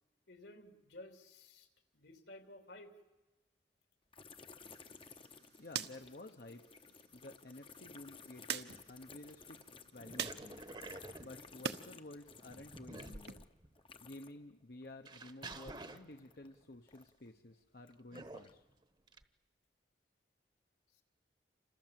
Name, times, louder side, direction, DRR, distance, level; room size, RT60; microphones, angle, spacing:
voice 1, 0.3-1.7 1.9-2.9 20.9-21.0, left 1 dB, 75° left, 5 dB, 3.2 m, -54 dB
sound 1, 4.1-14.5 14.8-17.3 17.8-18.6, left 5 dB, 30° left, 0.9 m, -57 dB
sound 2, 4.6-11.8 12.2-13.3, right 7 dB, 65° right, 1.1 m, -47 dB
voice 2, 5.6-6.6 7.1-9.6 9.9-10.7 11.2-13.5 14.0-18.6, left 2 dB, 55° left, 5 dB, 1.0 m, -52 dB
sound 3, 8.3-8.4 8.7-9.4 10.0-11.9 12.3-13.8 14.4-14.5 15.0-16.5 18.1-18.6 19.1-19.2, right 2 dB, 25° right, 1.1 m, -50 dB
29.0 x 26.0 x 7.7 m, 1.1 s
head